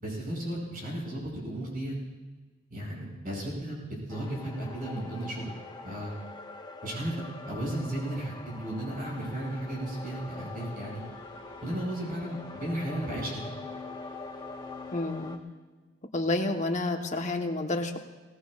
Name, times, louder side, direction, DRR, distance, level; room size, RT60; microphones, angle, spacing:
voice 1, 0.0-1.9 2.7-3.8 4.1-5.5 5.8-6.1 6.8-7.1 7.5-11.0 11.6-13.4, right 1 dB, 45° right, -3 dB, 5.7 m, -34 dB
sound 1, 4.1-15.4, left 3 dB, 20° left, 0.7 m, -44 dB
sound 2, 9.0-15.4, left 3 dB, 20° right, 4.9 m, -50 dB
voice 2, 14.9-15.4 16.1-18.0, left 2 dB, 40° left, 3 dB, 1.2 m, -29 dB
21.0 x 18.5 x 2.5 m, 1.3 s
head